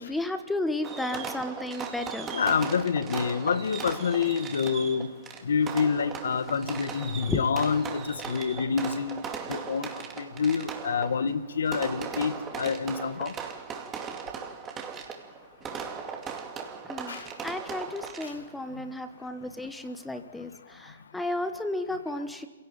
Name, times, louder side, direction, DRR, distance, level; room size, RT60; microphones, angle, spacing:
voice 1, 0.0-2.4 7.3-7.4 16.8-17.2 17.4-22.5, left 1 dB, 5° left, 9 dB, 1.3 m, -33 dB
Fireworks, 0.8-18.6, right 6 dB, 15° right, 2.4 m, -38 dB
voice 2, 2.3-5.1 5.4-9.2 9.5-9.9 10.2-13.3 17.1-17.3, left 6 dB, 70° left, 12 dB, 1.8 m, -27 dB
26.0 x 17.5 x 8.9 m, 1.3 s
hypercardioid pair, 155°, 0 cm